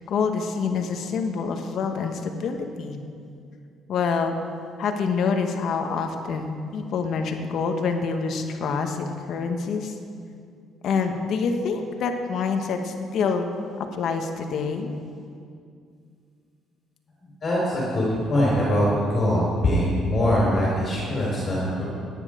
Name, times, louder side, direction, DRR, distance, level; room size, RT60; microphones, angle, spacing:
voice 1, 0.1-3.0 3.9-4.4 4.8-9.9 10.8-13.5 13.9-14.9, left 5 dB, 60° left, 5 dB, 1.3 m, -26 dB
voice 2, 17.4-18.8 19.1-21.8, left 1 dB, 35° left, -5 dB, 3.9 m, -22 dB
17.0 x 9.9 x 5.0 m, 2.3 s
cardioid pair, 125°, 0 cm